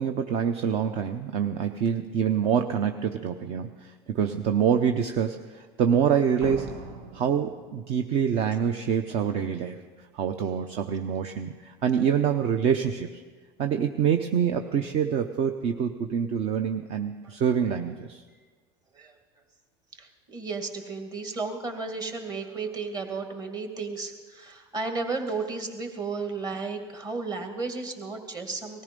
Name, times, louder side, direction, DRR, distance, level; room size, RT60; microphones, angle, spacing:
voice 1, 0.0-6.7 7.1-9.8 10.1-13.2 13.6-18.2, right 7 dB, 50° right, 7 dB, 0.7 m, -26 dB
Slam, 6.4-8.3, right 4 dB, 85° right, 1.8 m, -41 dB
voice 2, 19.9-28.8, right 4 dB, 30° right, 5 dB, 2.1 m, -33 dB
19.0 x 14.5 x 5.3 m, 1.4 s
supercardioid pair, 125°, 13 cm